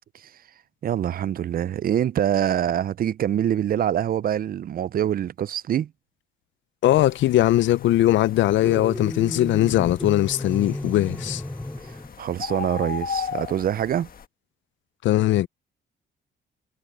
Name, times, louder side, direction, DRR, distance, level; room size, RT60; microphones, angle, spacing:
voice 1, 0.8-5.9 12.2-14.1, right 10 dB, 45° right, 0.4 m, -25 dB
voice 2, 6.8-11.4 15.0-15.5, left 14 dB, 70° left, 0.5 m, -20 dB
sound 1, 6.8-14.2, left 6 dB, 45° left, 1.5 m, -37 dB
sound 2, 8.6-12.1, left 1 dB, 5° left, 0.8 m, -33 dB
cardioid pair, 90°, 20 cm